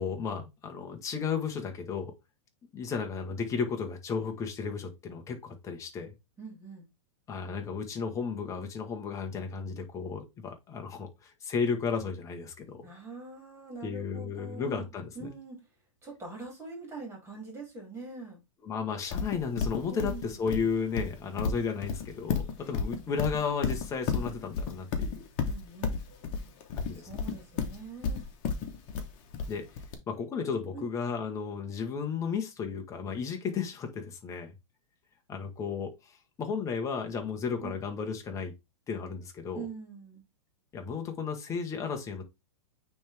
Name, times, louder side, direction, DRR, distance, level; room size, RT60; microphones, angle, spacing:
voice 1, 0.0-2.1 2.7-6.1 7.3-12.9 13.8-15.3 18.6-25.2 26.8-27.2 29.5-29.6 30.1-34.5 35.3-36.1 36.4-38.5 38.9-39.7 40.7-42.2, left 5 dB, 20° left, 1.4 m, -34 dB
voice 2, 6.4-6.9 12.8-14.9 15.1-15.6 16.0-18.4 19.9-20.3 25.5-26.0 27.0-28.2 30.7-30.9 37.6-37.8 39.5-40.2, right 4 dB, 15° right, 3.2 m, -43 dB
Livestock farm animals working animals, 19.1-29.9, left 5 dB, 40° left, 1.4 m, -32 dB
8.8 x 3.6 x 3.5 m
hypercardioid pair, 140°, 17 cm